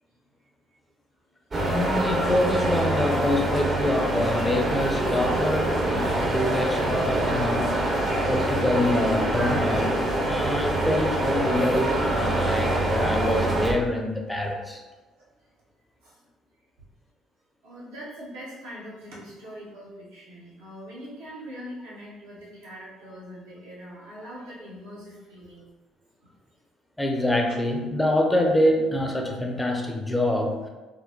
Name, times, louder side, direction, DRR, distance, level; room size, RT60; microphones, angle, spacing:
sound 1, 1.5-13.7, right 1 dB, 40° right, 0.8 m, -25 dB
voice 1, 1.7-7.7 8.3-14.8 27.0-30.7, left 1 dB, 10° left, 2 dB, 0.7 m, -25 dB
voice 2, 17.6-25.7 26.2-26.3, equal, 85° right, -8 dB, 1.3 m, -42 dB
4.2 x 2.1 x 3.0 m, 1.2 s
hypercardioid pair, 55°, 0 cm